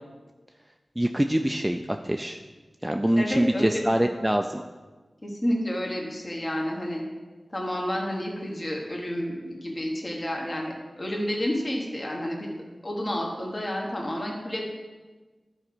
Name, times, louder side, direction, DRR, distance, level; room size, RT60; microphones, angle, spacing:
voice 1, 1.0-2.4 2.8-4.6, right 1 dB, 10° right, 5 dB, 0.4 m, -24 dB
voice 2, 3.2-4.1 5.2-7.0 7.5-12.6 12.8-14.6, equal, 35° left, -1 dB, 1.7 m, -30 dB
11.5 x 4.9 x 6.1 m, 1.3 s
wide cardioid pair, 65°, 0 cm